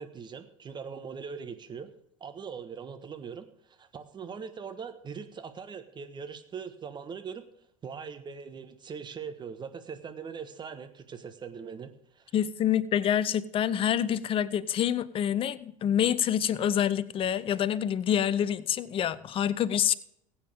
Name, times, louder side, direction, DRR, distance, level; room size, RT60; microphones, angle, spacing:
voice 1, 0.0-1.9 2.2-7.5 7.8-12.3, right 6 dB, 25° right, 1.3 m, -41 dB
voice 2, 12.3-19.9, left 9 dB, 30° left, 0.6 m, -27 dB
21.0 x 8.7 x 3.5 m
figure-of-eight pair, 70°, 17 cm